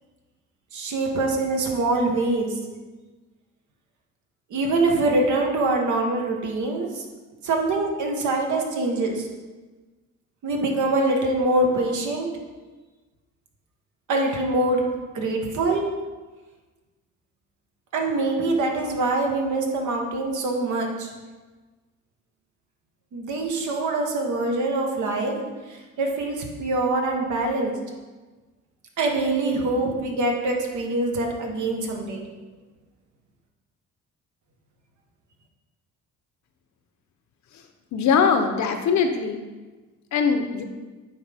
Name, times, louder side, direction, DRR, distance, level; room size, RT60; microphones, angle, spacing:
voice 1, 0.7-2.5 4.5-7.0 7.4-9.3 10.4-12.3 14.1-14.8 15.1-15.9 17.9-21.1 23.1-25.5 26.0-27.7 29.0-32.3, right 2 dB, 75° right, 1 dB, 1.3 m, -24 dB
voice 2, 37.9-39.5 40.1-40.6, left 6 dB, 70° left, 7 dB, 0.8 m, -22 dB
9.3 x 3.8 x 3.5 m, 1.3 s
cardioid pair, 90°, 30 cm